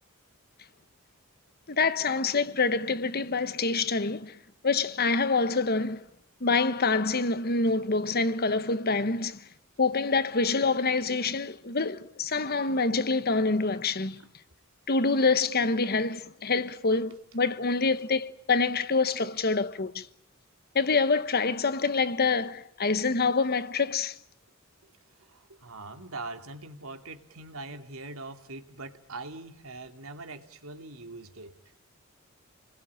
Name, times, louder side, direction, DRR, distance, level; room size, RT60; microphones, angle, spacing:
voice 1, 1.7-4.4 4.6-6.0 6.4-9.4 9.8-14.2 14.9-20.1 20.7-24.1, left 4 dB, 50° left, 1.2 m, -26 dB
voice 2, 25.2-31.5, right 2 dB, 85° right, 2.6 m, -42 dB
28.5 x 21.0 x 8.7 m
head